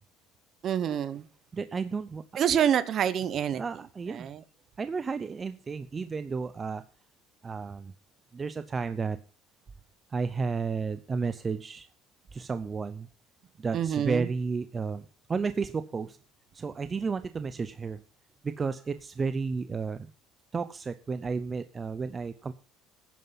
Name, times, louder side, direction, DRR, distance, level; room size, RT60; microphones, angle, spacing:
voice 1, 0.6-1.3 2.4-3.6 4.1-4.4 13.7-14.3, right 9 dB, 40° right, 1.0 m, -27 dB
voice 2, 1.5-2.2 3.5-4.3 4.8-6.8 7.4-7.9 8.3-9.2 10.1-11.9 12.3-13.1 13.6-16.2 16.5-18.0 18.4-20.1 20.5-22.5, right 5 dB, 20° right, 0.5 m, -32 dB
11.0 x 9.6 x 5.6 m
cardioid pair, 140°, 0 cm